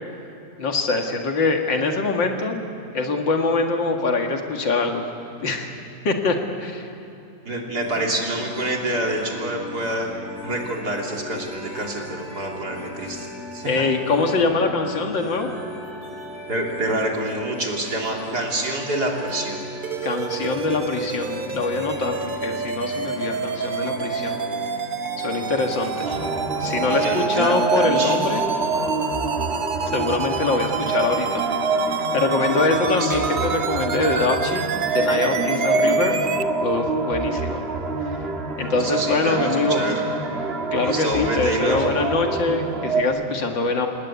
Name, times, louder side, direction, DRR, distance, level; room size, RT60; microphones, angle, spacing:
voice 1, 0.6-2.6 2.9-5.0 5.4-5.7 6.0-6.9 13.7-15.5 20.0-24.4 25.2-26.1 26.6-28.4 29.9-31.4 32.1-36.2 36.6-37.6 38.6-39.8 40.7-43.9, left 3 dB, 85° left, 3 dB, 2.8 m, -23 dB
voice 2, 7.5-10.1 10.4-13.7 16.5-19.6 26.1-26.2 26.8-28.2 32.9-33.3 35.8-36.0 38.7-40.0 40.8-41.9, right 1 dB, 60° right, 0 dB, 3.8 m, -27 dB
sound 1, 7.8-27.1, left 1 dB, 40° left, 4.3 m, -37 dB
sound 2, 19.8-36.4, right 6 dB, 75° right, 0.4 m, -28 dB
sound 3, 26.0-43.0, right 3 dB, 35° right, 1.8 m, -26 dB
27.5 x 19.5 x 8.5 m, 2.8 s
omnidirectional pair, 2.0 m